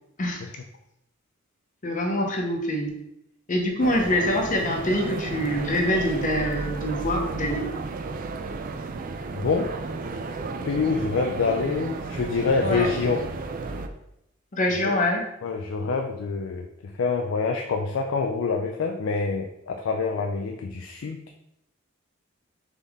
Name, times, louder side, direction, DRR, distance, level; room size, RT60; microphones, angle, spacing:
voice 1, 1.8-3.0 3.5-7.7 12.6-12.9 14.5-15.2, left 1 dB, 40° left, 2 dB, 0.8 m, -25 dB
sound 1, 3.8-13.9, right 3 dB, 45° right, 0.4 m, -33 dB
voice 2, 9.3-9.7 10.6-13.3 14.7-14.9 15.4-21.2, left 4 dB, 75° left, 3 dB, 0.4 m, -26 dB
4.0 x 3.6 x 3.5 m, 0.82 s
head